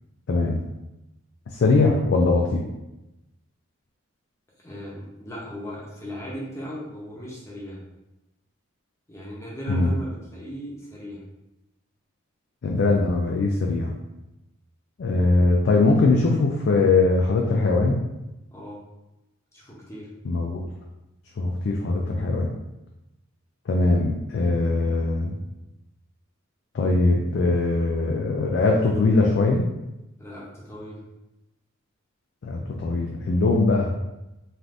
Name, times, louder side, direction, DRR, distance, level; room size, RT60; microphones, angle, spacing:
voice 1, 0.3-0.6 1.5-2.6 9.7-9.9 12.6-13.9 15.0-18.0 20.3-20.7 21.4-22.5 23.7-25.3 26.7-29.7 32.4-33.9, left 3 dB, 55° left, -1 dB, 0.3 m, -21 dB
voice 2, 4.6-7.8 9.1-11.2 18.5-18.8 19.5-20.1 30.2-31.1, equal, 15° left, -5 dB, 0.6 m, -37 dB
3.3 x 2.5 x 2.5 m, 0.95 s
head